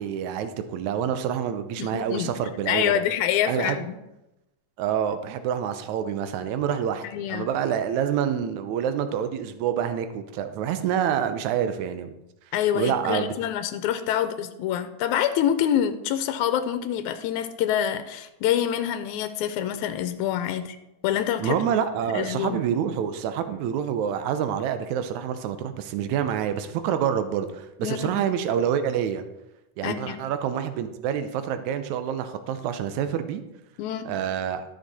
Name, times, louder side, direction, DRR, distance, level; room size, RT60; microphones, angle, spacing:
voice 1, 0.0-3.0 3.5-3.8 4.8-12.1 12.7-13.3 21.4-29.2 29.8-33.4 34.1-34.6, right 8 dB, 80° right, 10 dB, 2.1 m, -27 dB
voice 2, 1.8-2.3 2.7-4.0 7.0-7.5 12.5-20.8 21.0-21.6 22.0-22.6 27.8-28.2 29.8-30.2 33.8-34.1, left 10 dB, 90° left, 10 dB, 2.1 m, -26 dB
13.0 x 6.5 x 4.2 m, 0.93 s
omnidirectional pair, 3.3 m